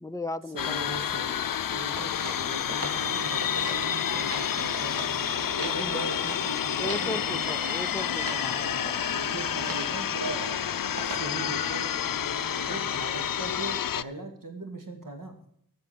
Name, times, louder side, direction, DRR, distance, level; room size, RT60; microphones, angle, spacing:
voice 1, 0.0-1.0 5.9-6.1 6.8-8.6 11.2-11.5, left 2 dB, 10° left, 12 dB, 0.5 m, -36 dB
voice 2, 0.5-5.3 5.5-7.4 8.5-10.5 11.0-11.9 12.6-15.4, right 1 dB, 60° right, 4 dB, 2.6 m, -39 dB
sound 1, 0.6-14.0, left 9 dB, 65° left, 0.5 m, -29 dB
sound 2, 1.9-3.8 4.1-5.1 5.4-7.1 7.5-7.8 8.2-8.5 8.8-9.2 9.6-9.9 10.2-10.6 11.0-11.4, right 1 dB, 40° right, 3.1 m, -40 dB
Organ, 2.7-13.5, right 3 dB, 80° right, 2.4 m, -45 dB
14.0 x 6.1 x 7.6 m, 0.66 s
wide cardioid pair, 65°, 36 cm